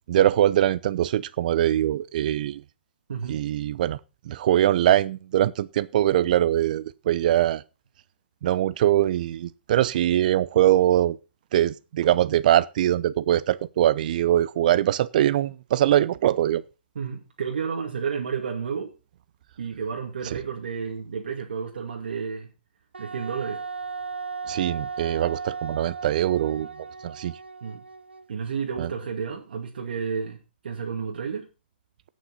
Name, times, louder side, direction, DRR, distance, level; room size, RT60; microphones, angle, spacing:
voice 1, 0.1-2.6 3.3-4.0 4.3-7.6 8.4-11.2 11.5-16.6 24.5-26.7 27.0-27.3 28.8-28.9, right 12 dB, 50° right, 0.7 m, -22 dB
voice 2, 3.1-3.4 16.9-18.9 19.6-22.5 23.0-23.6 27.6-27.8 28.3-31.5, right 6 dB, 65° right, 2.4 m, -31 dB
Wind instrument woodwind instrument, 22.9-28.4, right 5 dB, 85° right, 0.7 m, -36 dB
17.0 x 6.2 x 4.2 m
hypercardioid pair, 130°, 6 cm